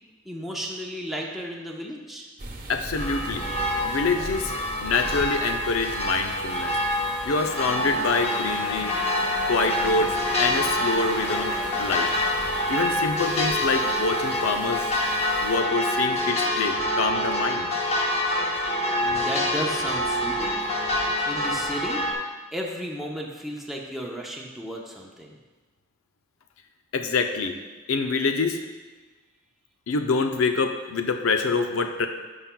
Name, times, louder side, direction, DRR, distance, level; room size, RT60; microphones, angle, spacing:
voice 1, 0.3-2.3 19.0-20.7 21.3-22.0 22.5-25.4, equal, ahead, -2 dB, 0.6 m, -34 dB
sound 1, 2.4-15.6, right 2 dB, 45° right, 0.9 m, -42 dB
voice 2, 2.7-3.5 3.8-4.5 4.8-6.8 7.2-9.0 9.5-12.1 12.7-14.9 15.4-17.7 26.9-27.6 27.9-28.6 29.9-32.1, left 4 dB, 85° left, 6 dB, 0.5 m, -26 dB
Venice Bells and Crowd, 2.9-22.1, left 1 dB, 30° left, 0.9 m, -26 dB
sound 2, 6.0-14.4, left 1 dB, 60° left, 1.5 m, -40 dB
11.5 x 5.6 x 2.2 m, 1.3 s
head